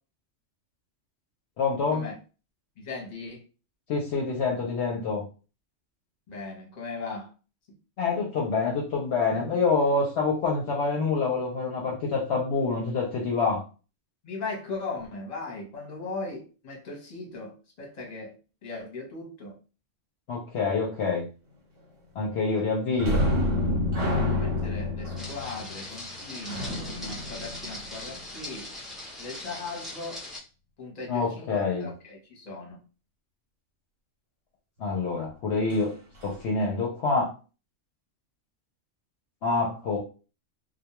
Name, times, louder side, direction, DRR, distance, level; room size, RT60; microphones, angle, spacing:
voice 1, 1.6-2.1 3.9-5.2 8.0-13.6 20.3-21.2 22.2-23.2 31.1-31.9 34.8-35.9 36.2-37.3 39.4-40.0, left 4 dB, 65° left, 0.8 m, -26 dB
voice 2, 2.8-3.4 6.3-7.3 14.2-18.4 18.6-19.6 22.5-22.6 24.3-28.7 29.2-30.2 30.8-32.8, left 3 dB, 40° left, 0.9 m, -38 dB
sound 1, 23.0-28.4 35.7-35.8 36.2-36.4, left 1 dB, 75° right, 1.1 m, -28 dB
sound 2, 25.2-30.4, left 2 dB, ahead, 0.4 m, -40 dB
2.2 x 2.2 x 2.9 m
omnidirectional pair, 1.3 m